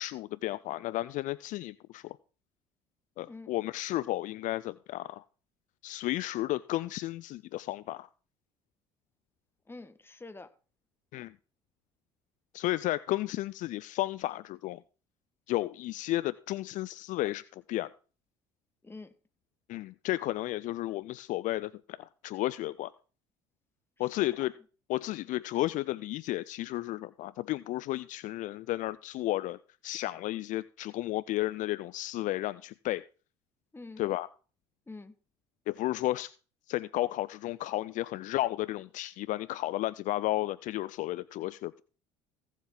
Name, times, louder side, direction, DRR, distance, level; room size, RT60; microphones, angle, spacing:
voice 1, 0.0-2.2 3.2-5.2 5.8-8.1 11.1-11.3 12.5-14.8 15.5-17.9 19.7-21.7 22.0-22.9 24.0-24.5 24.9-29.6 29.8-33.0 34.0-34.3 35.7-36.3 36.7-41.8, left 16 dB, 60° left, 0.4 m, -33 dB
voice 2, 3.2-3.6 9.7-10.5 18.8-19.1 24.0-24.6 33.7-34.0 34.9-35.2, left 3 dB, 15° left, 1.4 m, -47 dB
16.0 x 7.3 x 3.8 m
hypercardioid pair, 70°, 15 cm